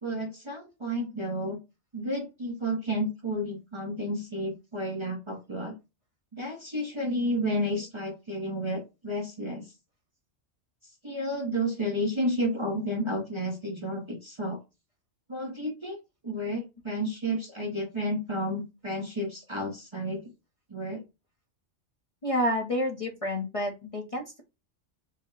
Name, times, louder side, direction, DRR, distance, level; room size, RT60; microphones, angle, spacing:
voice 1, 0.0-1.6 1.9-5.7 6.3-9.7 11.0-14.6 15.3-16.0 16.2-20.3 20.7-21.0, equal, 30° right, 0 dB, 0.7 m, -31 dB
voice 2, 22.2-24.4, left 1 dB, 35° left, 0 dB, 0.7 m, -29 dB
4.0 x 2.1 x 3.9 m, 0.26 s
omnidirectional pair, 1.2 m